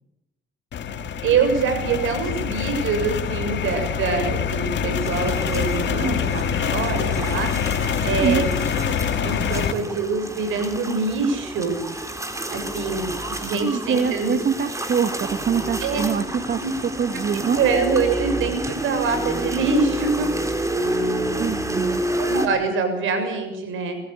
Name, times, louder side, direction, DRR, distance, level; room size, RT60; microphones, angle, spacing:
sound 1, 0.7-9.7, left 7 dB, 65° left, 2.0 m, -25 dB
voice 1, 1.2-7.5 7.8-8.5 9.2-11.8 12.5-14.4 15.8-16.1 16.6-16.7 17.1-17.2 17.6-20.3 22.2-24.0, right 4 dB, 85° right, 7 dB, 6.9 m, -24 dB
sound 2, 5.0-22.5, right 1 dB, 15° right, 4.1 m, -29 dB
voice 2, 7.9-8.5 13.6-17.6 21.4-22.1, right 6 dB, 55° right, 9 dB, 1.6 m, -25 dB
24.0 x 15.0 x 8.3 m, 0.85 s
cardioid pair, 90°, 20 cm